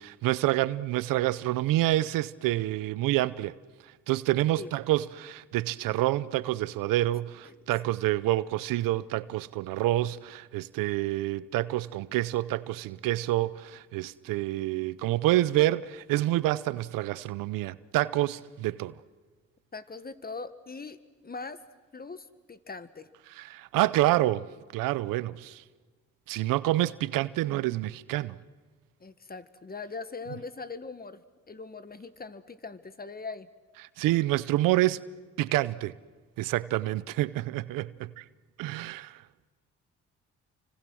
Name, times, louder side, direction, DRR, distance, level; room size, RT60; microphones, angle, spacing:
voice 1, 0.0-3.6 4.1-18.9 23.4-24.5 24.7-25.6 26.3-28.4 34.0-35.0 35.4-35.9 36.4-38.2 38.6-39.2, right 16 dB, 85° right, 0.7 m, -27 dB
voice 2, 19.7-21.6 21.9-23.1 29.0-33.5, left 4 dB, 30° left, 1.6 m, -41 dB
29.0 x 25.5 x 6.3 m
supercardioid pair, 65°, 32 cm